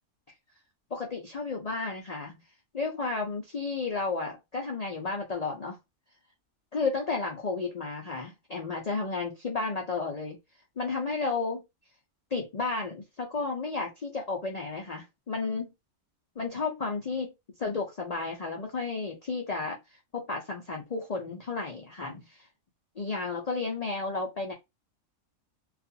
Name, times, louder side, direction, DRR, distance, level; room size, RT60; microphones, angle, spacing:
voice 1, 0.9-2.4 2.7-5.8 6.7-10.4 10.8-11.6 12.3-15.7 16.4-17.3 17.6-19.8 20.1-22.5 23.0-24.5, left 4 dB, 80° left, 0.3 m, -32 dB
2.4 x 2.3 x 2.6 m
omnidirectional pair, 1.5 m